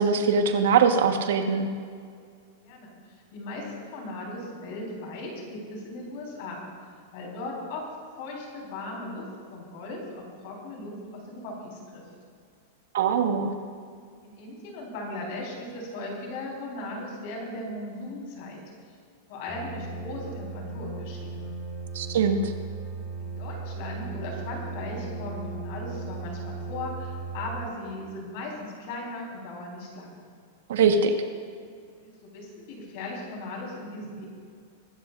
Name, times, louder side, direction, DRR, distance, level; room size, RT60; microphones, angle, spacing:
voice 1, 0.0-1.7 12.9-13.5 21.9-22.5 30.7-31.1, right 5 dB, 70° right, 6 dB, 1.3 m, -22 dB
voice 2, 2.6-2.9 3.3-6.7 7.1-7.8 8.1-9.2 9.5-12.0 14.2-18.6 19.3-21.5 23.2-30.2 32.0-34.3, left 2 dB, 40° left, -2 dB, 4.1 m, -37 dB
sound 1, 19.5-27.6, right 3 dB, 10° right, 2.0 m, -37 dB
23.5 x 13.0 x 2.5 m, 2.2 s
supercardioid pair, 180°, 0 cm